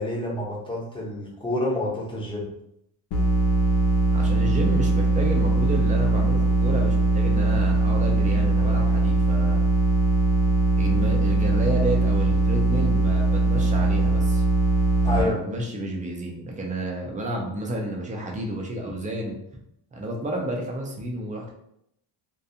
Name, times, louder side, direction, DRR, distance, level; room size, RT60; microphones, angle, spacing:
voice 1, 0.0-2.5 15.0-15.4, left 1 dB, 10° left, -4 dB, 0.7 m, -28 dB
sound 1, 3.1-15.2, right 2 dB, 50° left, 0.6 m, -21 dB
voice 2, 4.1-9.6 10.8-14.4 15.0-19.4 19.9-21.5, right 1 dB, 20° right, 0 dB, 0.3 m, -31 dB
2.4 x 2.2 x 2.7 m, 0.76 s
cardioid pair, 125°, 49 cm